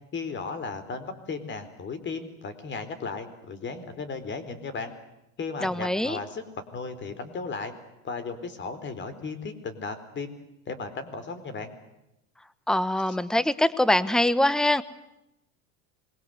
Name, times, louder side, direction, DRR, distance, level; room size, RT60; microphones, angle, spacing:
voice 1, 0.1-4.9 5.4-6.4 6.7-7.7 8.0-10.4 10.7-11.7, left 4 dB, 30° left, 12 dB, 4.3 m, -35 dB
voice 2, 5.6-6.2 12.7-14.8, left 1 dB, ahead, 16 dB, 1.2 m, -23 dB
26.5 x 22.0 x 8.0 m, 0.88 s
supercardioid pair, 120°, 35 cm